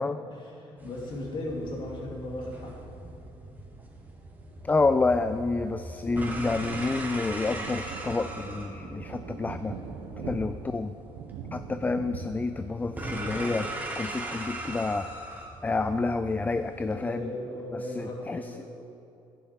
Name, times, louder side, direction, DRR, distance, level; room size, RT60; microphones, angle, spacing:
voice 1, 0.3-2.9 10.2-10.5 16.9-18.6, left 1 dB, 50° left, -2 dB, 2.7 m, -37 dB
sound 1, 0.8-16.9, right 1 dB, 15° right, 1.9 m, -40 dB
voice 2, 4.6-9.8 10.3-10.9 11.5-17.3 17.7-18.6, left 3 dB, 15° left, 10 dB, 0.3 m, -29 dB
sound 2, 6.7-13.4, right 5 dB, 85° right, 1.0 m, -42 dB
11.5 x 10.5 x 4.5 m, 2.7 s
cardioid pair, 110°, 10 cm